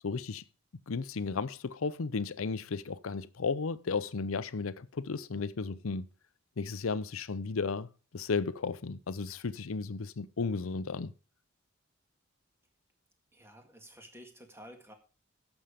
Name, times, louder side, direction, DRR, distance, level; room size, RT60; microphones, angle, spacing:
voice 1, 0.0-0.4 0.9-6.1 6.6-7.9 8.1-11.1, left 4 dB, 75° left, 0.6 m, -34 dB
voice 2, 13.3-14.9, equal, 10° right, 1.8 m, -52 dB
11.0 x 7.2 x 5.1 m
head